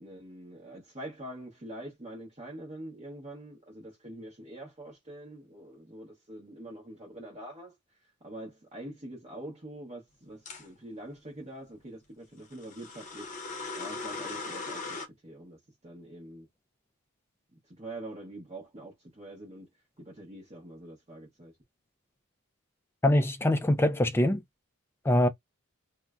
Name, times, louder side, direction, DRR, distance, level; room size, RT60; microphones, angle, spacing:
voice 1, 0.0-7.7 8.2-13.3 13.8-16.5 17.7-19.7 20.0-21.5, right 1 dB, 30° right, 0.8 m, -45 dB
sound 1, 10.5-10.7 12.5-15.1, left 3 dB, 35° left, 0.7 m, -38 dB
voice 2, 23.0-24.4 25.0-25.3, left 1 dB, 10° left, 0.3 m, -23 dB
3.8 x 2.0 x 2.3 m
head